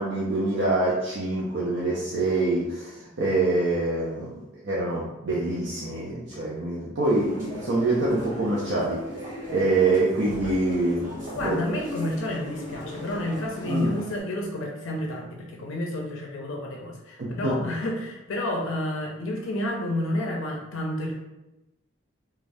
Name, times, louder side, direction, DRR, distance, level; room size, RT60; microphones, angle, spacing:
voice 1, 0.0-4.3 4.6-9.0 9.5-11.6 13.7-13.9 17.2-17.5, right 2 dB, 60° right, -6 dB, 0.5 m, -25 dB
sound 1, 7.0-14.2, equal, 40° right, 1.3 m, -38 dB
voice 2, 11.3-21.2, left 1 dB, 80° left, 0 dB, 0.5 m, -30 dB
2.5 x 2.2 x 3.3 m, 1.0 s
head